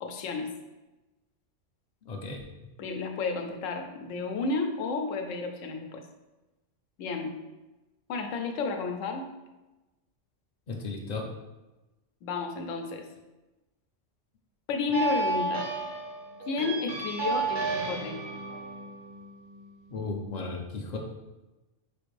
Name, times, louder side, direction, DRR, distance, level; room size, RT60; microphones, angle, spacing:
voice 1, 0.0-0.5 2.8-6.0 7.0-7.4 8.1-9.3 12.2-13.1 14.7-15.7 16.5-18.2, left 4 dB, 85° left, 4 dB, 0.9 m, -32 dB
voice 2, 2.0-2.4 10.7-11.3 19.9-21.0, left 3 dB, 55° left, 2 dB, 0.5 m, -35 dB
sound 1, 14.9-20.0, right 3 dB, 75° right, 1.2 m, -33 dB
5.1 x 2.5 x 3.2 m, 1.1 s
omnidirectional pair, 1.3 m